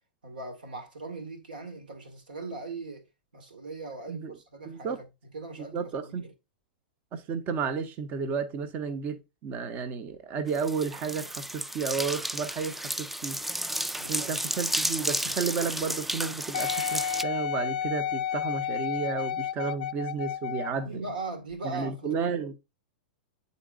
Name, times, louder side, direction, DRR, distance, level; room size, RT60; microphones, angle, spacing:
voice 1, 0.2-3.0 3.3-5.0 5.3-6.3 14.0-14.3 20.0-20.1 20.6-22.2, right 3 dB, 75° right, 1.8 m, -39 dB
voice 2, 4.6-5.0 5.7-6.3 7.1-13.4 14.1-21.0 21.6-22.6, right 5 dB, 35° right, 0.9 m, -32 dB
sound 1, 10.5-17.2, right 1 dB, 5° right, 0.3 m, -32 dB
Wind instrument woodwind instrument, 16.5-20.9 21.5-21.6, left 9 dB, 65° left, 0.5 m, -31 dB
9.0 x 4.1 x 2.5 m
hypercardioid pair, 100°, 5 cm